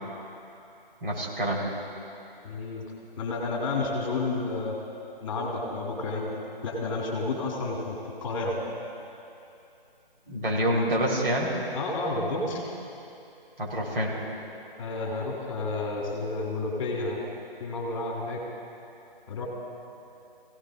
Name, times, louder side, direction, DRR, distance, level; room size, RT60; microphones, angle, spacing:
voice 1, 1.0-1.7 10.3-11.5 13.6-14.3, equal, 70° right, -4 dB, 4.1 m, -27 dB
voice 2, 2.4-2.8 3.2-4.7 5.2-6.3 6.6-8.5 11.7-12.6 14.8-17.2 17.6-18.4 19.3-19.5, left 3 dB, 35° left, -2 dB, 2.5 m, -30 dB
26.5 x 16.5 x 2.5 m, 2.7 s
figure-of-eight pair, 150°, 29 cm